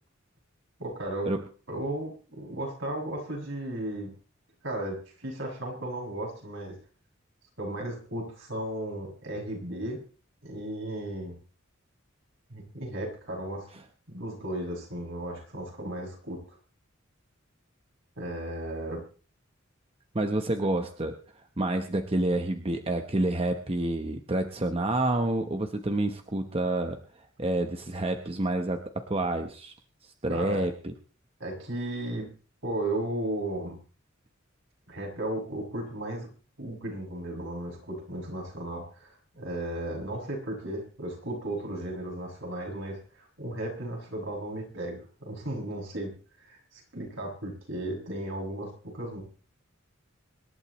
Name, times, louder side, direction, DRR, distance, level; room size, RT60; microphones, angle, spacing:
voice 1, 0.8-1.3 1.7-4.1 4.6-6.8 7.6-10.0 10.4-11.3 12.5-13.7 14.1-16.4 18.2-19.0 30.3-30.6 31.4-32.3 32.6-33.8 34.9-36.3 36.6-49.2, right 1 dB, 65° right, -1 dB, 7.0 m, -35 dB
voice 2, 20.1-21.2 21.6-27.0 27.4-29.7 30.0-30.9, right 2 dB, 30° right, 6 dB, 1.0 m, -28 dB
25.5 x 12.0 x 3.1 m, 0.37 s
head